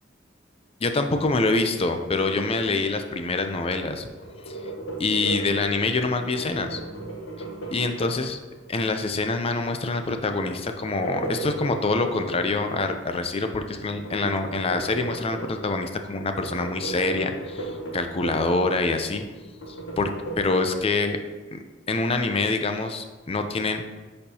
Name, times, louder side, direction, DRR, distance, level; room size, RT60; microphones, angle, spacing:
voice 1, 0.8-4.1 4.5-4.6 5.0-6.8 7.7-8.4 8.7-19.2 19.7-20.1 20.4-21.2 21.5-21.6 21.9-23.8, left 3 dB, 30° left, 6 dB, 0.5 m, -25 dB
sound 1, 2.1-3.5 3.8-8.6 10.4-13.0 13.8-15.8 16.2-18.6 19.0-20.4, right 2 dB, 80° left, 1.2 m, -36 dB
10.0 x 4.4 x 2.8 m, 1.2 s
head